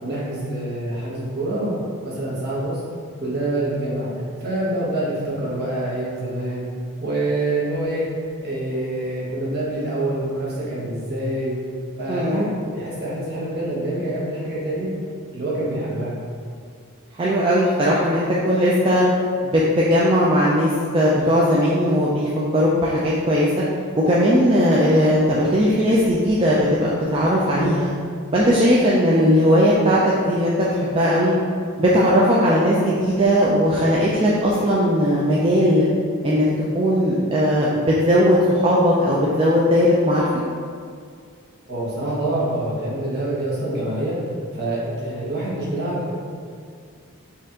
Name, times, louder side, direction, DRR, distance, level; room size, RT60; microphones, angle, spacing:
voice 1, 0.0-1.8 2.0-2.8 3.2-4.1 4.4-6.7 7.0-8.1 8.4-11.6 12.0-14.9 15.3-16.2 41.7-44.2 44.5-46.1, right 1 dB, 45° right, -7 dB, 1.0 m, -26 dB
voice 2, 12.1-12.4 17.2-19.0 19.4-23.6 24.1-27.9 28.3-31.3 31.8-35.8 36.2-36.5 36.7-40.3, equal, 25° right, -6 dB, 0.3 m, -18 dB
4.3 x 2.5 x 3.6 m, 2.1 s
head